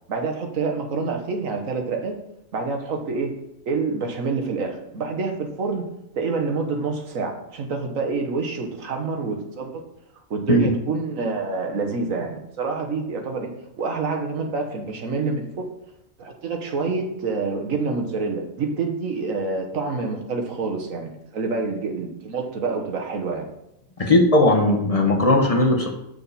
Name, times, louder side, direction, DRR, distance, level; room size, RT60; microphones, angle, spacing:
voice 1, 0.1-2.1 2.5-3.4 3.7-5.9 6.1-9.8 10.3-13.5 13.8-15.6 16.2-23.5, right 4 dB, 85° right, 3 dB, 1.6 m, -27 dB
voice 2, 24.0-25.9, left 1 dB, 30° left, 0 dB, 1.1 m, -17 dB
7.5 x 6.5 x 4.2 m, 0.83 s
omnidirectional pair, 1.3 m